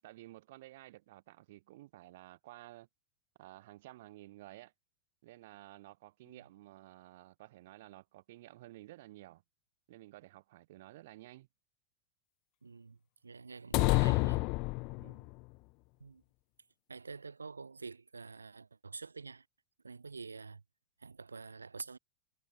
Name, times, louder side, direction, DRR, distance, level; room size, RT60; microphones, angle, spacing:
voice 1, 0.0-2.9 3.4-4.7 5.2-9.4 9.9-11.5 15.0-15.3, right 17 dB, 55° right, 7.7 m, -53 dB
voice 2, 12.6-14.4 16.0-16.2 16.9-19.5 19.8-20.6 21.0-22.0, right 4 dB, 75° right, 4.2 m, -47 dB
sound 1, 13.7-15.3, left 27 dB, 45° left, 0.6 m, -29 dB
figure-of-eight pair, 90°, 0 cm